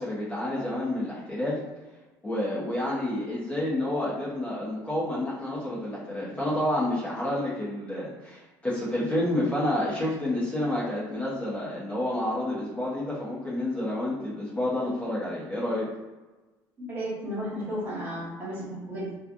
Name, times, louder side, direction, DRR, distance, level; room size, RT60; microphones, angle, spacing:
voice 1, 0.0-1.6 2.2-15.9, left 1 dB, 20° left, -8 dB, 0.9 m, -29 dB
voice 2, 16.8-19.1, equal, 30° right, -7 dB, 1.4 m, -33 dB
3.1 x 2.3 x 2.5 m, 1.2 s
cardioid pair, 125°, 7 cm